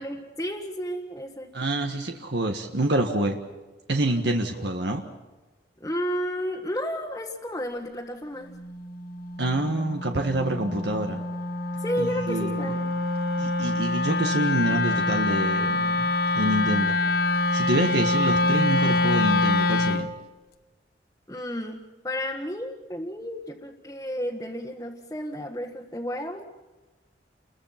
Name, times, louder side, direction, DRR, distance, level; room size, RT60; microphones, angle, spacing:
voice 1, 0.0-1.5 5.8-8.5 11.8-12.8 21.3-26.4, equal, 15° left, -1 dB, 1.6 m, -32 dB
voice 2, 1.5-3.4 3.9-5.0 9.4-11.2 12.0-12.7 13.4-17.0 17.5-20.1, right 1 dB, 70° right, 3 dB, 1.7 m, -27 dB
Wind instrument woodwind instrument, 8.5-20.1, left 2 dB, 55° left, 1.2 m, -25 dB
30.0 x 22.0 x 6.0 m, 1.2 s
head